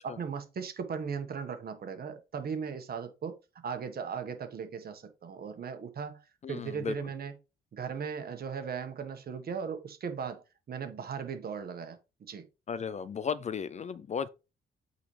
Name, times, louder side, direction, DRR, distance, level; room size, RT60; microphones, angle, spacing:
voice 1, 0.0-3.4 3.6-7.3 7.7-12.0 12.3-12.4, right 6 dB, 50° right, 1.5 m, -37 dB
voice 2, 6.4-6.9 12.7-14.3, left 7 dB, 35° left, 0.4 m, -35 dB
8.4 x 4.1 x 3.3 m
cardioid pair, 90°, 20 cm